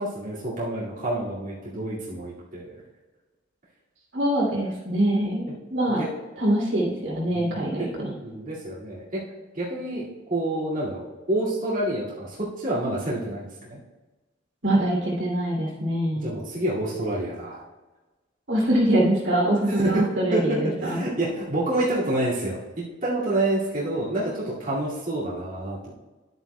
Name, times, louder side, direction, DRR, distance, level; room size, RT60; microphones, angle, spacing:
voice 1, 0.0-2.7 5.9-6.1 7.3-7.9 8.2-9.2 9.5-13.8 16.1-17.6 19.8-20.0 20.3-26.0, right 1 dB, 45° right, -9 dB, 2.3 m, -28 dB
voice 2, 4.1-6.0 6.4-8.1 14.6-16.3 18.5-21.0, right 1 dB, 70° right, -3 dB, 2.9 m, -24 dB
11.0 x 9.3 x 2.3 m, 1.2 s
head